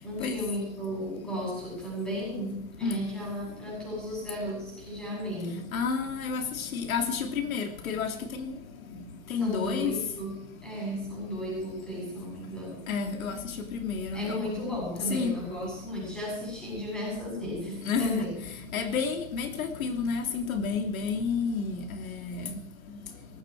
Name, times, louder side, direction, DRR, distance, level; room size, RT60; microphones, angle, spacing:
voice 1, 0.0-5.7 9.3-12.8 14.1-18.3, equal, ahead, -4 dB, 8.0 m, -35 dB
voice 2, 5.7-8.5 9.3-9.9 12.9-13.4 13.7-14.5 15.1-15.4 17.8-18.3 18.7-22.6, left 5 dB, 85° left, 5 dB, 3.0 m, -30 dB
18.5 x 15.5 x 4.8 m, 0.73 s
supercardioid pair, 175°, 41 cm